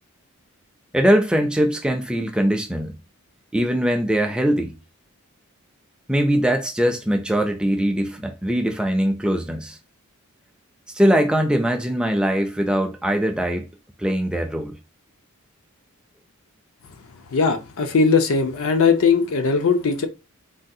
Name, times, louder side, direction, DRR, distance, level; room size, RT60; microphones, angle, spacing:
voice 1, 0.9-3.0 3.5-4.8 6.1-9.8 10.9-13.7 14.0-14.8, equal, 5° right, 0.3 m, -21 dB
voice 2, 17.3-20.1, left 5 dB, 70° left, 0.5 m, -19 dB
3.5 x 2.3 x 2.6 m
head